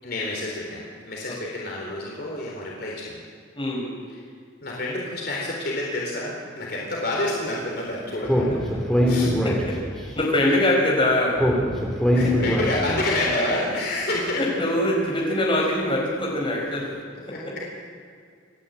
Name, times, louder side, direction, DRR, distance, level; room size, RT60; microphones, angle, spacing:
voice 1, 0.0-3.2 4.1-4.2 4.6-8.6 9.1-9.3 12.1-14.4 17.3-17.6, left 1 dB, 50° left, -3 dB, 3.9 m, -28 dB
voice 2, 3.6-3.9 10.1-11.4 14.4-16.9, left 1 dB, 25° left, -3 dB, 5.6 m, -23 dB
Speech, 8.2-10.1 11.4-13.1, equal, ahead, 3.0 m, -22 dB
28.5 x 11.5 x 8.6 m, 2.2 s
head